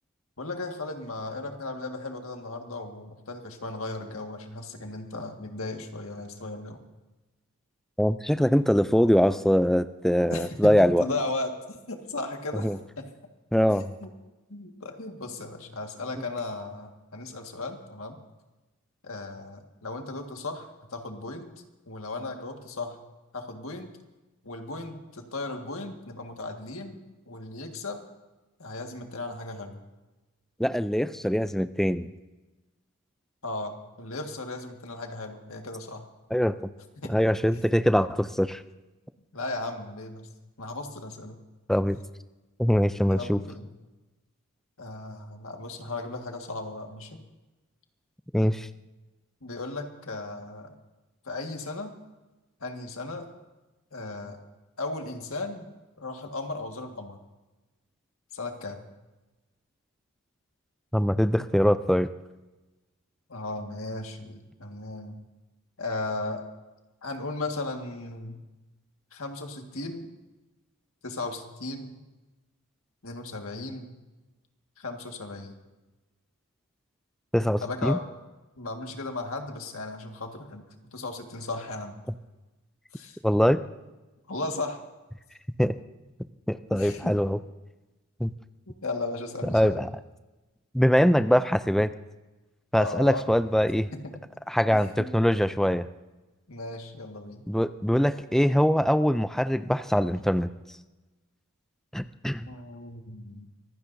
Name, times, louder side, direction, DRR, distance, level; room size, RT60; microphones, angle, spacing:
voice 1, 0.4-6.8 10.3-12.7 13.0-13.1 14.0-14.1 14.5-18.2 19.0-21.5 21.9-23.0 23.3-23.9 24.4-27.0 27.3-28.0 28.6-29.8 33.4-36.0 37.0-37.1 39.3-40.3 40.6-41.4 43.1-43.7 44.8-47.2 49.4-50.7 51.3-51.9 52.6-53.3 53.9-54.4 54.8-55.7 56.0-57.2 58.3-58.8 63.3-65.2 65.8-66.4 67.0-68.4 69.1-70.1 71.0-72.0 73.0-73.9 74.8-75.5 77.6-78.0 78.6-82.0 82.9-83.2 84.3-84.8 86.7-87.2 88.7-89.8 92.8-93.3 93.9-94.0 94.7-95.1 96.5-97.4 102.5-103.5, left 2 dB, 70° left, 4 dB, 1.8 m, -36 dB
voice 2, 8.0-11.1 12.6-12.8 13.5-14.0 30.6-32.1 36.3-36.6 37.1-38.6 41.7-42.0 42.6-43.4 48.3-48.7 60.9-62.1 77.3-78.0 83.2-83.6 85.6-85.7 86.5-87.4 88.2-88.3 89.5-89.9 90.7-91.9 92.7-93.9 94.5-95.9 97.5-100.5 101.9-102.5, equal, ahead, 12 dB, 0.4 m, -23 dB
24.5 x 16.0 x 2.7 m, 1.1 s
head